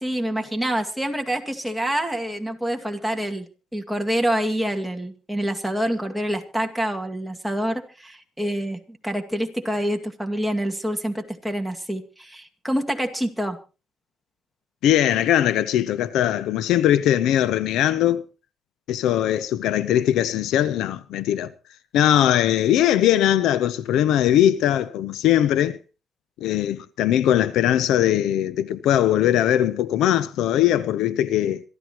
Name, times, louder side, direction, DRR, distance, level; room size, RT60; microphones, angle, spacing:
voice 1, 0.0-13.6, equal, ahead, 2.2 m, -27 dB
voice 2, 14.8-18.2 18.9-21.5 21.9-25.8 26.4-31.6, left 11 dB, 85° left, 0.7 m, -20 dB
26.0 x 12.5 x 3.0 m
cardioid pair, 90°, 0 cm